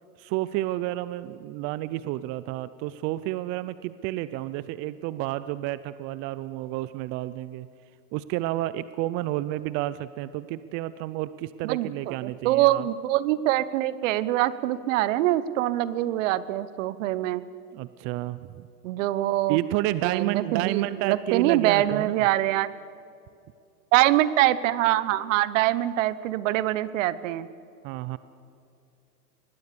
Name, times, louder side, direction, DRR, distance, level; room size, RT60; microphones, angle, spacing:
voice 1, 0.2-7.7 8.1-12.9 17.7-18.7 19.5-22.1 27.8-28.2, right 15 dB, 30° right, 15 dB, 0.5 m, -30 dB
voice 2, 11.6-17.4 18.8-19.6 20.0-22.7 23.9-27.5, right 14 dB, 55° right, 16 dB, 1.1 m, -24 dB
25.0 x 20.0 x 6.9 m, 2.6 s
hypercardioid pair, 115°, 47 cm